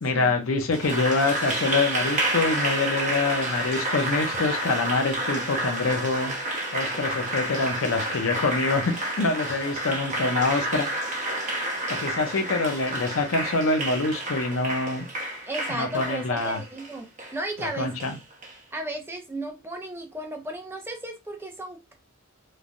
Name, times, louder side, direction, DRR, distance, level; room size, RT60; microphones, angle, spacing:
voice 1, 0.0-6.3 6.7-10.9 11.9-15.0 15.7-16.6 17.6-18.2, left 3 dB, 70° left, 0.6 m, -25 dB
Applause, 0.7-18.5, right 1 dB, 35° right, 0.9 m, -30 dB
voice 2, 5.2-5.5 15.5-18.1 18.7-21.9, right 1 dB, 10° right, 0.5 m, -35 dB
3.2 x 2.1 x 2.5 m
head